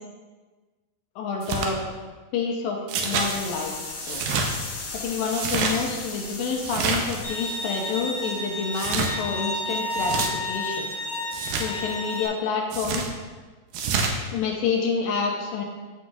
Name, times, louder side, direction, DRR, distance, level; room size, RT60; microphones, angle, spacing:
voice 1, 1.2-1.8 2.3-3.8 4.1-4.2 4.9-10.2 10.4-10.9 11.6-13.1 14.3-15.6, left 5 dB, 75° left, 1 dB, 2.4 m, -28 dB
sound 1, 1.4-1.7 2.9-3.3 4.0-4.5 5.3-5.7 6.6-7.2 8.7-9.1 9.9-10.3 11.3-11.7 12.7-13.1 13.7-14.1, right 5 dB, 75° right, 2.3 m, -27 dB
sound 2, 3.1-8.7, left 3 dB, 60° left, 2.0 m, -37 dB
Bowed string instrument, 7.2-12.3, left 1 dB, 35° left, 1.6 m, -31 dB
14.0 x 5.0 x 2.4 m, 1.3 s
omnidirectional pair, 4.4 m